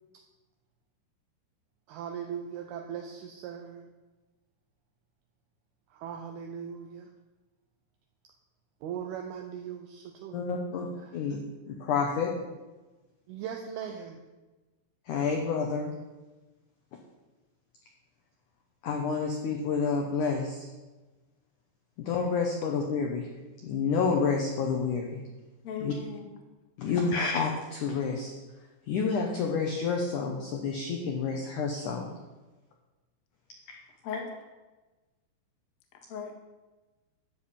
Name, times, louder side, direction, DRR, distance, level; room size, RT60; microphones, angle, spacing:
voice 1, 1.9-3.9 5.9-7.1 8.8-10.4 11.0-11.2 13.3-14.2, right 8 dB, 80° right, 3 dB, 2.4 m, -39 dB
voice 2, 10.3-10.9 11.1-11.4 11.7-12.3 15.1-15.9 18.8-20.7 22.0-23.3 23.6-25.2 25.8-25.9 26.8-28.3 28.9-32.1, left 5 dB, 85° left, 1 dB, 1.7 m, -29 dB
voice 3, 25.6-26.3 34.0-34.3 36.1-36.5, left 6 dB, 60° left, 2 dB, 1.9 m, -37 dB
12.5 x 4.5 x 8.6 m, 1.2 s
omnidirectional pair, 5.1 m